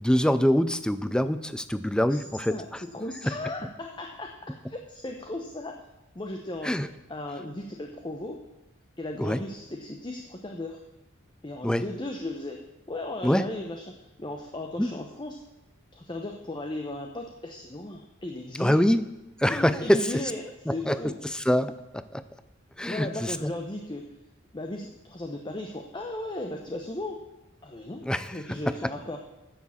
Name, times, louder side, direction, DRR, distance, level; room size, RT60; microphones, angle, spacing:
voice 1, 0.0-2.8 6.6-6.9 9.2-9.4 11.6-11.8 13.2-13.5 14.8-14.9 18.6-19.0 19.4-20.1 20.7-21.0 21.2-22.2 22.8-23.5 28.0-28.4, equal, 5° left, 13 dB, 0.4 m, -25 dB
voice 2, 2.5-5.8 6.1-6.8 7.1-8.4 9.0-10.8 11.4-15.4 15.9-18.8 19.5-21.2 22.9-24.1 24.5-27.2 27.6-29.2, left 1 dB, 25° left, 3 dB, 0.8 m, -36 dB
10.0 x 7.4 x 7.1 m, 0.99 s
head